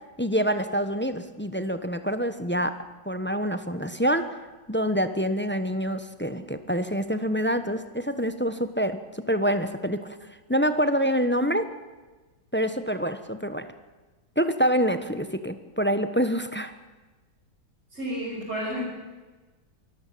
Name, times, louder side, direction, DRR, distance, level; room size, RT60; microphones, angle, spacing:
voice 1, 0.2-2.7 3.0-4.3 4.7-11.7 12.5-13.7 14.4-16.7, equal, 10° left, 10 dB, 0.8 m, -26 dB
voice 2, 17.9-18.8, equal, 30° right, -6 dB, 6.0 m, -31 dB
24.5 x 14.0 x 8.6 m, 1.2 s
omnidirectional pair, 2.1 m